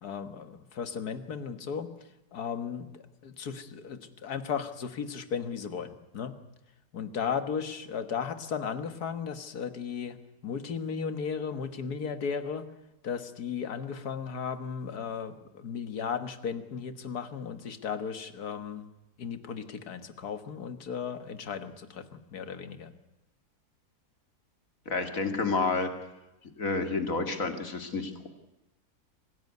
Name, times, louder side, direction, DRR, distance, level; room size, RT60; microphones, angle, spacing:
voice 1, 0.0-1.9 2.3-6.4 6.9-10.2 10.4-12.7 13.0-18.8 19.2-22.9, left 6 dB, 75° left, 10 dB, 2.0 m, -35 dB
voice 2, 24.9-25.9 26.6-28.3, left 3 dB, 60° left, 7 dB, 2.7 m, -29 dB
24.5 x 16.5 x 9.5 m, 0.97 s
omnidirectional pair, 1.7 m